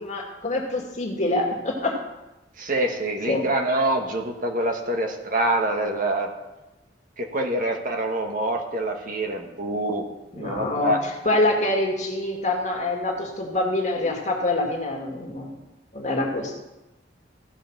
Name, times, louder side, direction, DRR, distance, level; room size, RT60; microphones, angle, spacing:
voice 1, 0.0-2.0 3.3-3.5 10.3-10.9 11.2-15.6 15.9-16.6, left 2 dB, 45° left, 1 dB, 2.1 m, -25 dB
voice 2, 2.6-6.3 7.2-10.0 10.3-11.0, right 1 dB, 50° right, 3 dB, 1.5 m, -25 dB
15.5 x 5.6 x 6.0 m, 1.0 s
head